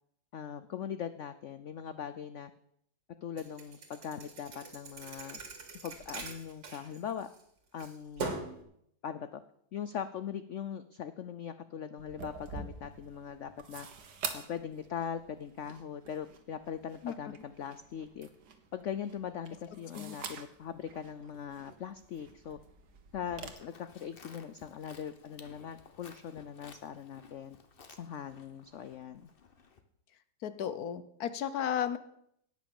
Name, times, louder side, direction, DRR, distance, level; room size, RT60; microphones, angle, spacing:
voice 1, 0.3-2.5 3.2-5.4 5.8-7.3 7.7-8.4 9.0-9.4 9.7-13.9 14.3-18.3 18.7-22.6 23.1-27.6 27.9-29.3, left 8 dB, 85° left, 12 dB, 0.6 m, -41 dB
Thump thud, 3.4-7.4 7.8-8.6, right 3 dB, 80° right, 2.8 m, -42 dB
sound 1, 12.0-23.5, right 5 dB, 60° right, 1.8 m, -47 dB
Livestock farm animals working animals, 23.3-29.8, left 5 dB, 35° left, 1.0 m, -57 dB
voice 2, 30.4-32.0, left 9 dB, 60° left, 13 dB, 1.2 m, -34 dB
17.5 x 6.3 x 7.1 m, 0.72 s
omnidirectional pair, 2.0 m